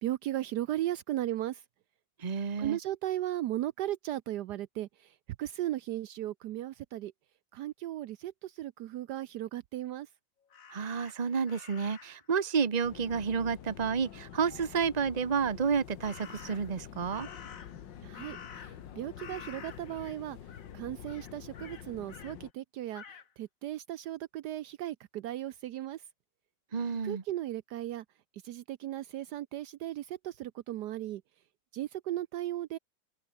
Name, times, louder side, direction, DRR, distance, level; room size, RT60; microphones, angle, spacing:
voice 1, 0.0-1.6 2.6-4.9 5.4-7.1 7.5-10.1 18.0-20.4 20.7-23.0 23.4-26.0 27.0-28.0 28.4-31.2 31.7-32.8, right 13 dB, 70° right, 1.1 m, -36 dB
voice 2, 2.2-2.8 10.7-17.3 26.7-27.2, right 6 dB, 25° right, 1.0 m, -30 dB
Crow, 10.5-12.3 16.0-16.8 17.1-18.9 19.2-20.2 20.5-20.7 21.1-22.4 22.9-23.3, left 6 dB, 50° left, 1.8 m, -50 dB
sound 1, 12.8-22.5, left 9 dB, 85° left, 1.9 m, -47 dB
open air
omnidirectional pair, 1.9 m